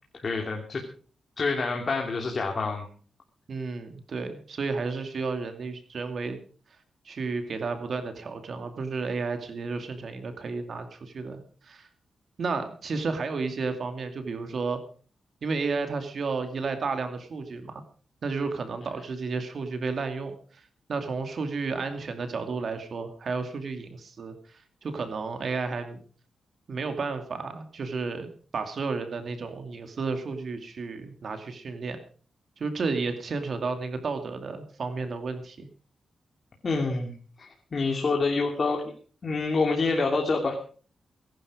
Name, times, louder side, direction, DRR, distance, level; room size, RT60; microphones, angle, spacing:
voice 1, 0.2-0.8 1.4-2.9 36.6-37.1 37.4-38.8 39.2-40.6, left 3 dB, 40° left, 1 dB, 2.9 m, -27 dB
voice 2, 3.5-6.4 7.0-11.9 12.4-14.8 15.4-17.8 18.2-20.6 20.9-26.0 26.7-32.0 32.6-35.7, right 4 dB, 55° right, 7 dB, 2.4 m, -32 dB
20.5 x 11.5 x 5.0 m, 0.42 s
wide cardioid pair, 110°, 0 cm